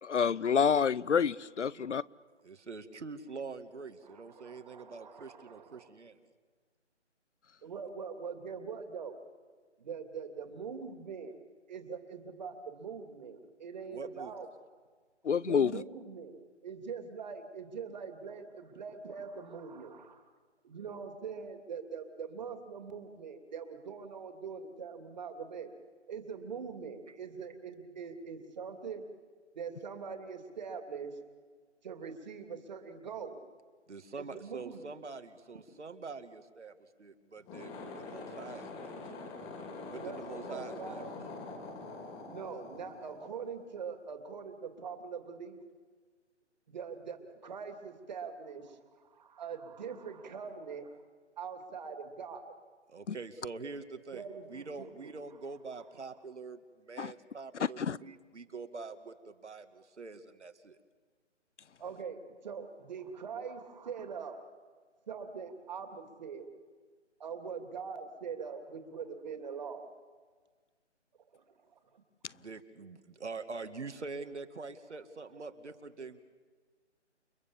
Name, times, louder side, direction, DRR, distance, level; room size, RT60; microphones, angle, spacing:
voice 1, 0.0-2.0 15.2-15.7 53.1-53.2 57.0-57.1 57.8-58.0, left 6 dB, 75° left, 22 dB, 0.8 m, -28 dB
voice 2, 2.4-6.2 13.9-14.3 33.9-36.7 37.0-37.7 38.0-38.9 39.9-41.0 52.9-54.2 54.5-60.8 72.3-76.2, right 4 dB, 70° right, 8 dB, 2.2 m, -45 dB
voice 3, 4.0-5.9 7.6-9.2 9.8-11.3 11.7-14.5 15.4-20.2 20.6-25.7 26.1-29.1 29.5-31.1 31.8-33.4 34.2-34.9 39.9-41.1 42.2-45.6 46.7-51.0 51.4-52.5 54.1-55.1 61.8-64.4 65.1-66.5 67.2-69.9 71.3-71.4 71.7-72.0, right 6 dB, 40° right, 6 dB, 2.6 m, -43 dB
sound 1, 37.4-43.9, left 3 dB, 15° left, 2.5 m, -45 dB
29.5 x 22.0 x 7.4 m, 1.5 s
figure-of-eight pair, 160°, 36 cm